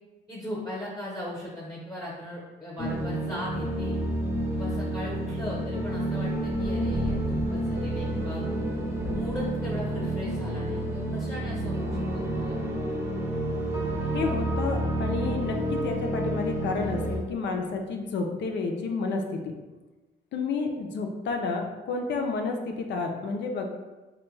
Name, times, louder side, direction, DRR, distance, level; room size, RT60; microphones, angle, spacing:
voice 1, 0.3-4.0 4.5-8.4 9.1-12.7, left 1 dB, 15° left, -6 dB, 0.9 m, -38 dB
sound 1, 2.8-17.2, right 1 dB, 10° right, 0.7 m, -29 dB
Thunderstorm, 4.5-17.9, equal, 60° right, 0.8 m, -43 dB
voice 2, 14.1-19.5 20.3-23.7, left 4 dB, 65° left, 3 dB, 0.5 m, -30 dB
3.3 x 2.2 x 3.2 m, 1.2 s
cardioid pair, 90°, 20 cm